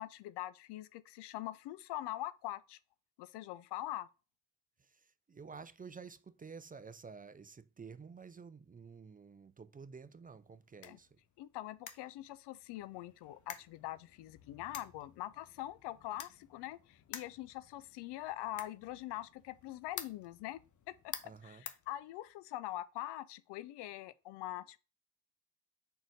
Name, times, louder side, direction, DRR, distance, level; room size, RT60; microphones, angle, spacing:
voice 1, 0.0-2.8 3.2-4.1 10.8-11.0 11.4-20.6 20.9-24.8, left 15 dB, 80° left, 0.5 m, -43 dB
voice 2, 4.8-11.1 21.2-21.7, right 5 dB, 20° right, 0.4 m, -51 dB
sound 1, 10.3-22.5, left 8 dB, 50° left, 0.8 m, -52 dB
4.7 x 4.0 x 5.0 m
supercardioid pair, 60°, 40 cm